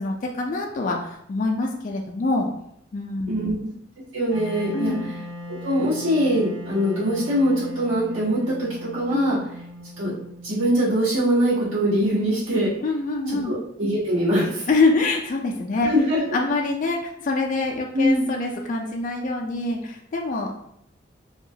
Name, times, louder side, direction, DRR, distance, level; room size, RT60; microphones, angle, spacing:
voice 1, 0.0-2.5 2.9-3.6 4.7-5.1 9.1-9.4 12.8-13.6 14.7-15.9 16.3-20.5, left 3 dB, 40° left, 0 dB, 0.3 m, -25 dB
voice 2, 3.3-3.6 4.1-4.9 5.5-8.7 8.9-9.4 10.0-10.1 10.4-12.7 13.4-14.7 15.8-16.2 17.9-18.3, equal, 85° right, -11 dB, 1.4 m, -22 dB
Wind instrument woodwind instrument, 4.3-11.3, left 1 dB, 65° right, 0.7 m, -39 dB
2.8 x 2.3 x 2.7 m, 0.71 s
head